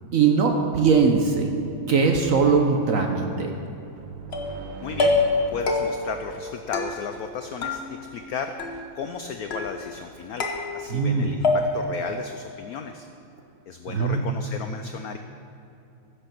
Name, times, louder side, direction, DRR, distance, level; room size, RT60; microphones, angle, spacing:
voice 1, 0.1-3.5 10.9-11.3 13.9-14.3, right 5 dB, 55° right, 3 dB, 1.1 m, -21 dB
sound 1, 4.0-7.7, right 4 dB, 85° right, 1.7 m, -41 dB
sound 2, 4.3-4.7 5.0-5.4 5.7-6.2 6.7-7.3 7.6-8.3 8.6-9.1 9.5-10.0 10.4-11.1 11.4-12.0, left 3 dB, 40° left, 1.1 m, -26 dB
voice 2, 4.8-5.2 5.5-13.1 13.7-15.2, left 6 dB, 85° left, 7 dB, 0.8 m, -34 dB
15.5 x 6.7 x 6.0 m, 2.8 s
omnidirectional pair, 2.2 m